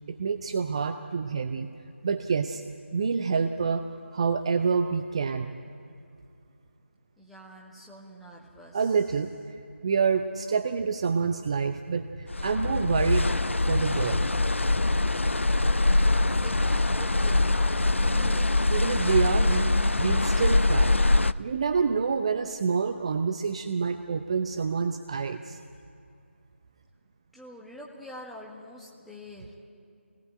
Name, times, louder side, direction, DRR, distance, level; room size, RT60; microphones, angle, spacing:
voice 1, 0.1-1.7 2.0-2.6 2.9-3.8 4.1-5.6 8.7-9.3 9.8-13.3 13.7-14.3 18.7-25.6, right 5 dB, 25° right, 8 dB, 0.7 m, -27 dB
voice 2, 7.2-8.9 16.3-17.7 18.0-18.7 27.3-29.6, left 1 dB, ahead, -4 dB, 1.5 m, -46 dB
sound 1, 12.3-21.3, left 2 dB, 75° left, 0.6 m, -23 dB
25.5 x 18.5 x 9.1 m, 2.5 s
figure-of-eight pair, 160°, 7 cm